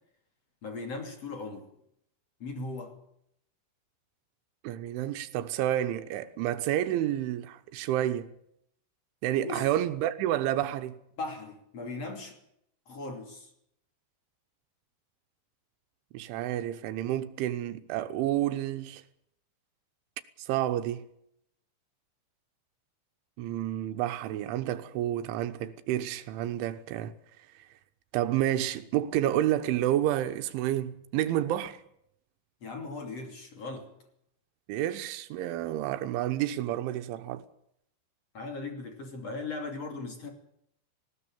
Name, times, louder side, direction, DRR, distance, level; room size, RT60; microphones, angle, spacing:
voice 1, 0.6-1.7 2.4-2.9 9.4-9.6 11.2-12.4 12.9-13.5 32.6-33.9 38.3-40.3, left 3 dB, 40° left, 3.2 m, -38 dB
voice 2, 4.6-8.4 9.2-11.0 16.1-19.0 20.4-21.1 23.4-27.2 28.1-31.8 34.7-37.4, right 12 dB, 90° right, 3.5 m, -30 dB
19.5 x 18.0 x 8.8 m
omnidirectional pair, 5.3 m